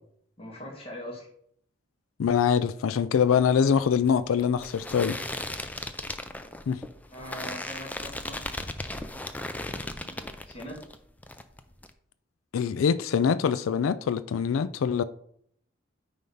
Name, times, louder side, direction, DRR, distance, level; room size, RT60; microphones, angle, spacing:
voice 1, 0.4-1.3 7.1-8.7 9.4-10.8, equal, 30° left, 1.8 m, -42 dB
voice 2, 2.2-5.2 6.7-6.8 12.5-15.0, left 7 dB, 85° left, 0.4 m, -24 dB
sound 1, 3.2-11.0 11.2-11.9, left 1 dB, 10° left, 0.4 m, -37 dB
9.2 x 3.4 x 5.4 m
head